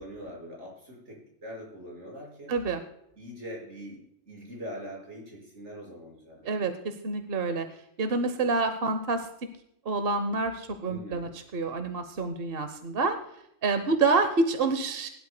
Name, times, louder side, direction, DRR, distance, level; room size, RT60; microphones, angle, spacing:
voice 1, 0.0-2.5 3.2-6.7 10.8-11.3, equal, 85° right, -3 dB, 6.1 m, -43 dB
voice 2, 2.5-2.8 6.4-7.7 8.0-9.3 9.8-13.2 13.6-15.1, right 3 dB, 60° right, 8 dB, 1.1 m, -27 dB
21.0 x 12.0 x 2.2 m, 0.76 s
omnidirectional pair, 1.2 m